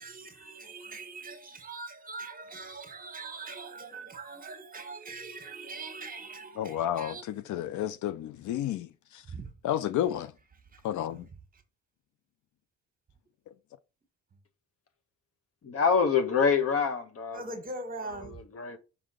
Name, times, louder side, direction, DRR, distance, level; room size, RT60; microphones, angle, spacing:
voice 1, 0.0-7.2 9.3-9.5 10.7-10.8 11.5-11.6 17.3-18.4, right 3 dB, 30° right, 1.6 m, -42 dB
voice 2, 6.6-9.2 9.6-10.3 10.8-11.3, left 11 dB, 75° left, 0.6 m, -31 dB
voice 3, 15.6-17.4 18.5-18.8, left 6 dB, 50° left, 1.4 m, -25 dB
6.1 x 3.9 x 4.9 m
cardioid pair, 90°, 30 cm